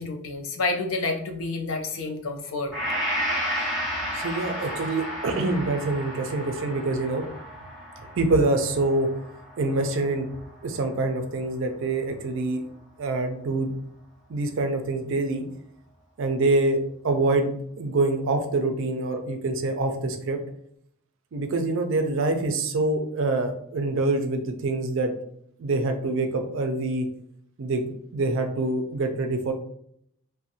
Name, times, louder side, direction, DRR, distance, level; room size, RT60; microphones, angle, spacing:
voice 1, 0.0-2.7, left 3 dB, 65° left, 4 dB, 0.4 m, -29 dB
Gong, 2.7-10.8, equal, 5° right, 1.1 m, -32 dB
voice 2, 4.1-7.2 8.2-9.1 9.6-10.3 10.6-12.6 13.0-13.7 14.3-15.4 16.2-20.4 21.3-25.1 25.6-27.1 27.6-29.5, right 2 dB, 60° right, 5 dB, 0.4 m, -25 dB
2.5 x 2.1 x 2.7 m, 0.69 s
head